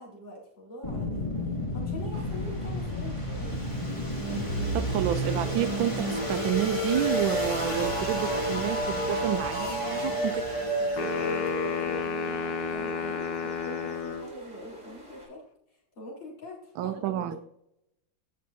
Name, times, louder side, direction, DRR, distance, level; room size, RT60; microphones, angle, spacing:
voice 1, 0.0-1.4 1.7-3.6 9.9-15.4 15.7-17.4, left 1 dB, 60° left, -4 dB, 4.6 m, -44 dB
sound 1, 0.8-13.7, equal, 15° left, 2.1 m, -30 dB
sound 2, 2.1-15.3, right 1 dB, 35° right, 4.8 m, -50 dB
voice 2, 4.7-10.4 16.8-17.4, right 11 dB, 75° right, 9 dB, 1.3 m, -30 dB
sound 3, 11.0-14.3, left 6 dB, 80° left, 2.1 m, -31 dB
17.0 x 6.5 x 2.7 m, 0.78 s
omnidirectional pair, 2.3 m